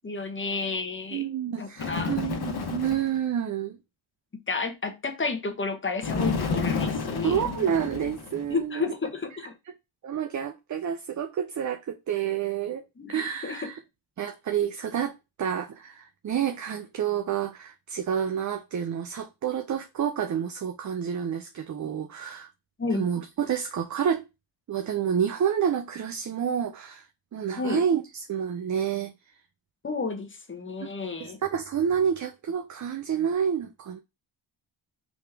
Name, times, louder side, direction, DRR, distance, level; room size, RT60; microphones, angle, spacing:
voice 1, 0.0-1.3 1.6-2.1 4.5-7.6 8.5-9.5 13.0-13.7 22.8-23.1 27.6-27.8 29.8-31.4, left 4 dB, 25° left, 0.9 m, -31 dB
voice 2, 1.1-3.8 7.2-8.9 10.0-12.8 13.1-13.8 14.2-15.1 15.4-22.5 22.9-24.2 24.7-27.1 27.3-29.1 30.8-30.9 31.2-34.0, right 8 dB, 40° right, 0.5 m, -29 dB
Bird, 1.8-3.2 6.0-8.5, left 4 dB, 50° left, 1.0 m, -30 dB
3.6 x 2.9 x 3.3 m
cardioid pair, 90°, 48 cm